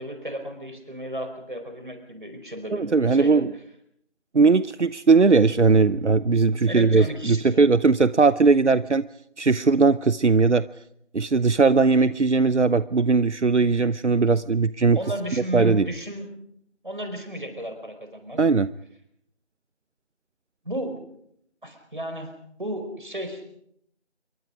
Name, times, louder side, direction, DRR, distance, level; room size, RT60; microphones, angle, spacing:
voice 1, 0.0-3.4 6.6-7.6 14.9-16.3 16.8-18.4 20.6-21.0 21.6-22.3 22.6-23.4, right 1 dB, 45° right, 6 dB, 4.9 m, -34 dB
voice 2, 2.7-3.5 4.3-9.1 9.4-10.7 11.1-15.0 15.5-15.9 18.4-18.7, right 4 dB, 80° right, 16 dB, 0.8 m, -19 dB
27.5 x 24.0 x 5.2 m, 0.74 s
figure-of-eight pair, 180°, 34 cm